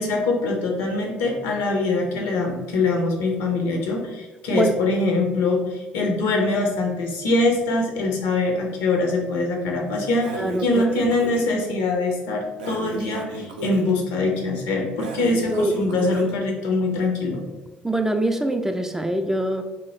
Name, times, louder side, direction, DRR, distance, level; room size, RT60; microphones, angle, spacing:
voice 1, 0.0-17.4, left 2 dB, 70° left, 2 dB, 0.6 m, -23 dB
Breathing, 10.2-11.5 12.6-13.9 15.0-16.3, right 3 dB, 85° right, 0.3 m, -34 dB
voice 2, 10.4-11.1 15.5-15.8 17.8-19.6, right 1 dB, 10° right, 6 dB, 0.3 m, -24 dB
2.8 x 2.2 x 3.1 m, 1.1 s
hypercardioid pair, 55°, 5 cm